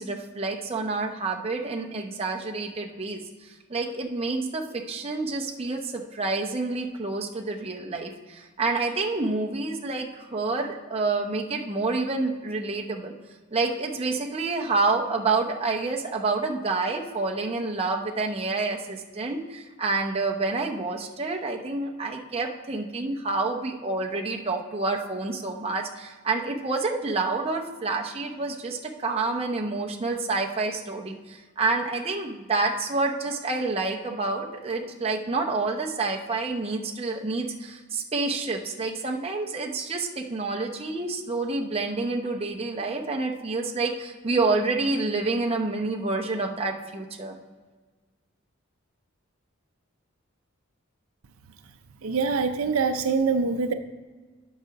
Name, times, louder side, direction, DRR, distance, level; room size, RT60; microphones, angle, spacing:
voice 1, 0.0-3.2 3.7-13.1 13.5-47.4, right 3 dB, 30° right, 1 dB, 0.7 m, -28 dB
voice 2, 52.0-53.7, right 4 dB, 80° right, 9 dB, 0.5 m, -24 dB
8.0 x 4.8 x 5.8 m, 1.4 s
head